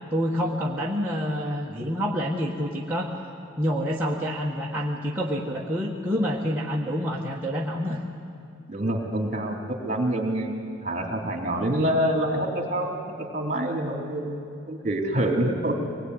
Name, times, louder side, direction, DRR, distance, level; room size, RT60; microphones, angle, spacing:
voice 1, 0.1-3.1 3.6-8.0, equal, 10° right, -5 dB, 1.4 m, -27 dB
voice 2, 8.7-10.5 10.8-14.4 14.7-15.8, right 1 dB, 35° right, 2 dB, 3.2 m, -26 dB
24.5 x 20.0 x 9.6 m, 2.5 s
head